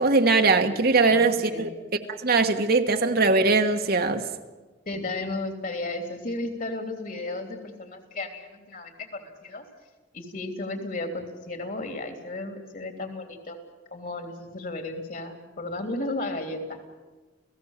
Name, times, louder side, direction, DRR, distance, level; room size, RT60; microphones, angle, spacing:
voice 1, 0.0-1.7 2.1-4.2, right 3 dB, 55° right, 1.4 m, -21 dB
voice 2, 1.0-1.7 4.8-9.6 10.1-13.6 13.9-16.8, left 2 dB, 50° left, 3.2 m, -34 dB
29.5 x 17.0 x 7.4 m
head